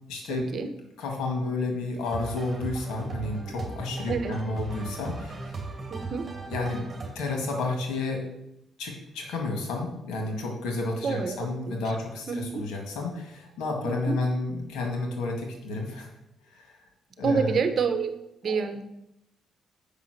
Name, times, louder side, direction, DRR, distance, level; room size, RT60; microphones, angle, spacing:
voice 1, 0.1-0.5 1.0-5.6 6.5-8.2 8.8-16.1 16.5-16.8 17.2-17.6 18.4-18.6, left 2 dB, 90° left, 2 dB, 2.0 m, -31 dB
sound 1, 2.0-7.1, right 3 dB, 30° right, 2.5 m, -37 dB
voice 2, 5.9-6.2 11.0-11.4 12.3-12.6 13.8-14.2 17.2-18.1 18.4-18.8, right 5 dB, 55° right, 8 dB, 1.0 m, -27 dB
6.7 x 5.5 x 6.6 m, 0.84 s
cardioid pair, 90°, 0 cm